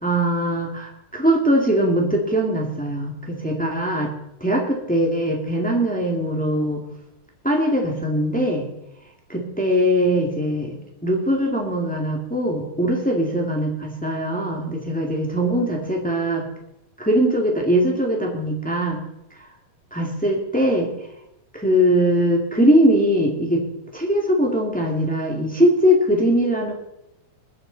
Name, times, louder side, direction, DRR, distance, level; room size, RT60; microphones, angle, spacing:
voice 1, 0.0-4.1 4.4-6.8 7.4-8.6 9.3-16.4 17.0-19.0 19.9-20.9 21.5-23.6 23.9-26.7, equal, 5° left, 0 dB, 0.7 m, -21 dB
21.5 x 10.0 x 4.0 m, 0.86 s
omnidirectional pair, 4.0 m